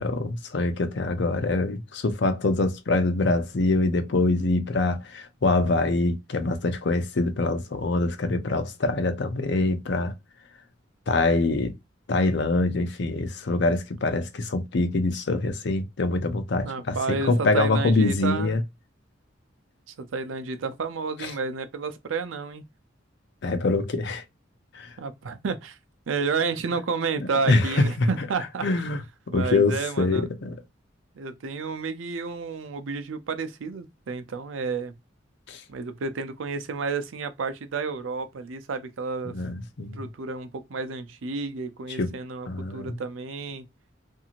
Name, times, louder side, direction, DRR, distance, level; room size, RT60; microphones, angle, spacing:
voice 1, 0.0-10.1 11.1-11.7 12.1-18.6 21.2-21.3 23.4-24.2 24.7-25.0 27.5-28.1 28.6-29.0 29.3-30.5 35.5-35.6 39.3-40.0 42.0-42.1 42.5-43.0, left 2 dB, 60° left, 0.5 m, -24 dB
voice 2, 16.6-18.6 20.0-22.6 25.0-25.8 26.1-28.9 29.3-30.3 31.2-34.9 35.7-39.4 39.9-42.5 42.7-43.6, right 4 dB, 85° right, 0.5 m, -31 dB
2.6 x 2.4 x 2.8 m
head